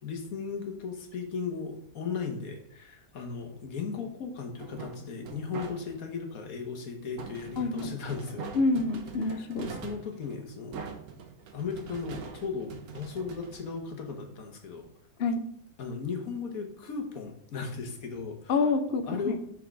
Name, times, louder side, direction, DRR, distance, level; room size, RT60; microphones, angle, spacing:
voice 1, 0.0-8.5 9.2-10.8 11.5-14.9 15.8-18.5 19.0-19.4, left 5 dB, 75° left, 4 dB, 1.5 m, -36 dB
sound 1, 4.6-6.2 7.2-14.3, right 5 dB, 85° right, 1.4 m, -43 dB
voice 2, 7.6-7.9 8.5-9.7 15.2-15.5 18.5-19.4, left 3 dB, 55° left, 7 dB, 0.8 m, -27 dB
6.1 x 4.6 x 4.7 m, 0.72 s
omnidirectional pair, 1.5 m